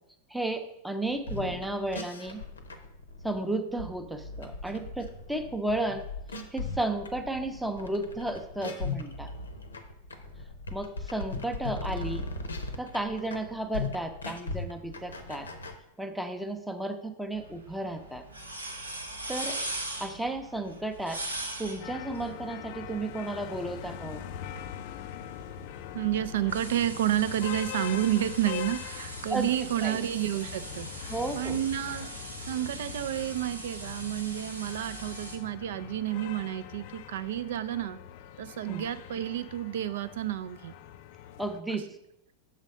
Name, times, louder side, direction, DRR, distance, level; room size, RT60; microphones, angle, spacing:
voice 1, 0.3-2.4 3.2-6.0 6.5-9.3 10.7-12.2 12.8-15.5 16.0-18.2 19.3-19.6 20.0-21.2 21.6-24.2 29.3-29.5 29.8-30.0 31.1-31.6 38.7-38.9 41.4-41.9, right 2 dB, 5° right, 6 dB, 0.6 m, -33 dB
sound 1, 1.2-15.8, left 3 dB, 75° left, 0.7 m, -38 dB
sound 2, 17.3-35.4, right 2 dB, 85° right, 0.9 m, -41 dB
sound 3, 21.8-41.6, left 10 dB, 50° left, 0.3 m, -42 dB
voice 2, 25.9-32.2 32.5-38.0 38.4-40.7 41.7-41.8, right 12 dB, 55° right, 13 dB, 0.4 m, -30 dB
6.3 x 4.0 x 5.4 m, 0.80 s
figure-of-eight pair, 90°, 0 cm